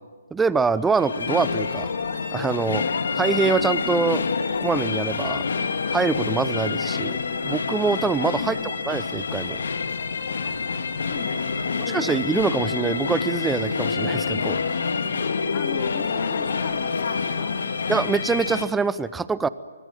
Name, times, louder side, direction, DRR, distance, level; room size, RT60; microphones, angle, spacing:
voice 1, 0.3-1.9 2.3-2.9 3.2-4.2 4.6-5.4 5.9-7.2 7.4-9.6 11.9-14.6 17.9-19.5, right 4 dB, 5° right, 17 dB, 0.7 m, -24 dB
sound 1, 0.9-18.7, left 5 dB, 60° left, 2.0 m, -27 dB
voice 2, 8.4-8.7 11.0-12.1 15.5-17.1 17.4-17.8, left 8 dB, 25° left, 5 dB, 2.7 m, -37 dB
25.5 x 21.5 x 9.3 m, 1.5 s
figure-of-eight pair, 140°, 0 cm